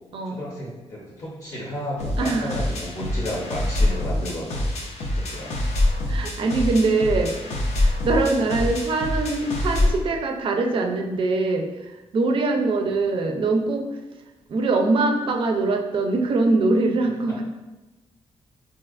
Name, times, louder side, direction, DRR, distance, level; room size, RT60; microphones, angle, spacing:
voice 1, 0.2-4.6 5.0-5.7 8.3-8.8, equal, 30° left, -4 dB, 0.6 m, -33 dB
sound 1, 2.0-10.0, left 1 dB, 85° left, 0.6 m, -25 dB
voice 2, 2.2-2.6 6.1-14.0 14.5-17.4, right 3 dB, 50° right, 3 dB, 0.4 m, -23 dB
4.2 x 2.6 x 2.4 m, 1.1 s
wide cardioid pair, 170°, 11 cm